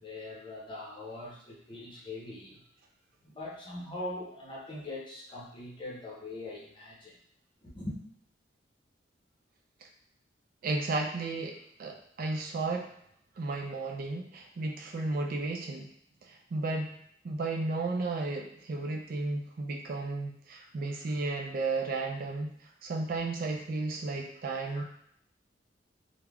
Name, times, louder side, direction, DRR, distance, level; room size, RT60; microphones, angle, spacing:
voice 1, 0.0-2.6 3.2-7.2 7.6-8.0 24.6-24.8, left 2 dB, 25° left, -5 dB, 0.7 m, -42 dB
voice 2, 10.6-12.9 13.4-15.9 16.2-16.9 17.2-22.5 22.8-24.8, right 3 dB, 50° right, 1 dB, 0.3 m, -33 dB
3.3 x 2.1 x 2.3 m, 0.69 s
head